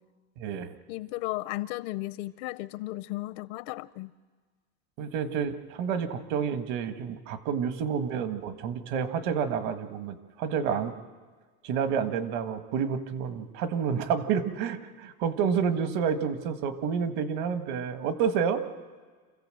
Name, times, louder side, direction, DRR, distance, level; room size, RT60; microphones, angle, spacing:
voice 1, 0.4-0.7 5.0-10.9 11.6-18.6, right 7 dB, 60° right, 10 dB, 1.6 m, -29 dB
voice 2, 0.9-4.1, left 18 dB, 80° left, 16 dB, 0.7 m, -35 dB
27.5 x 16.0 x 7.7 m, 1.5 s
cardioid pair, 165°, 33 cm